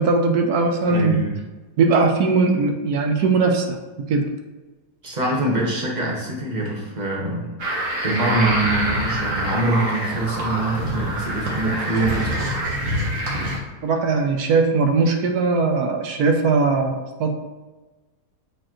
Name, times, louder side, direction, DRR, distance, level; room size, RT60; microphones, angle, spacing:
voice 1, 0.0-1.2 1.8-3.7 4.1-4.2 13.8-17.3, right 4 dB, 70° right, 4 dB, 1.2 m, -19 dB
voice 2, 0.8-1.3 5.0-7.5 8.0-12.3, right 2 dB, 25° right, -3 dB, 1.3 m, -24 dB
sound 1, 7.6-13.6, right 1 dB, 50° right, 1.5 m, -25 dB
7.5 x 4.4 x 3.0 m, 1.2 s
omnidirectional pair, 1.8 m